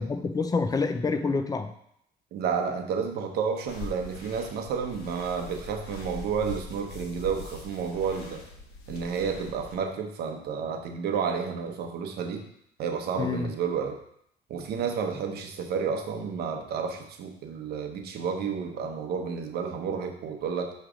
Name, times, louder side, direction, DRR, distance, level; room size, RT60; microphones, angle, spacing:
voice 1, 0.0-1.7 13.2-13.5, left 4 dB, 20° left, 8 dB, 0.5 m, -27 dB
voice 2, 2.3-8.4 8.9-12.4 12.8-14.0 14.5-20.7, right 6 dB, 70° right, 4 dB, 0.9 m, -31 dB
sound 1, 3.7-9.8, left 3 dB, 70° left, 1.2 m, -42 dB
6.0 x 3.2 x 5.0 m, 0.71 s
cardioid pair, 110°, 17 cm